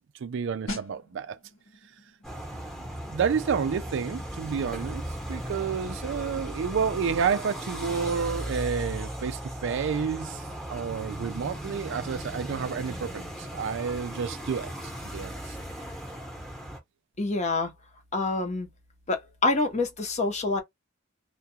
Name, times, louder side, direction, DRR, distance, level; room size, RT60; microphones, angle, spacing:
voice 1, 0.0-1.4 3.1-5.0 5.3-10.4 10.7-14.7 15.1-15.6, right 6 dB, 65° right, 0.4 m, -30 dB
sound 1, 0.7-11.2 11.4-11.7, left 1 dB, 85° left, 1.0 m, -47 dB
sound 2, 2.2-16.8, equal, 5° left, 0.9 m, -37 dB
voice 2, 17.2-17.7 18.1-18.7 19.1-20.6, left 3 dB, 35° left, 0.8 m, -26 dB
2.3 x 2.2 x 2.7 m
head